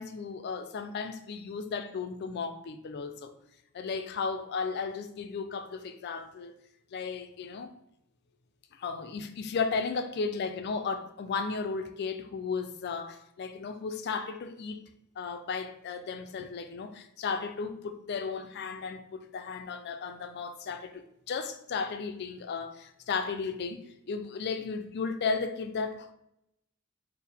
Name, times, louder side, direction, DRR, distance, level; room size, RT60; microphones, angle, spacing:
voice 1, 0.0-3.3 3.7-6.5 6.9-7.7 8.7-14.8 15.2-23.8 24.1-26.1, left 5 dB, 55° left, 0.4 m, -34 dB
4.5 x 2.1 x 3.4 m
head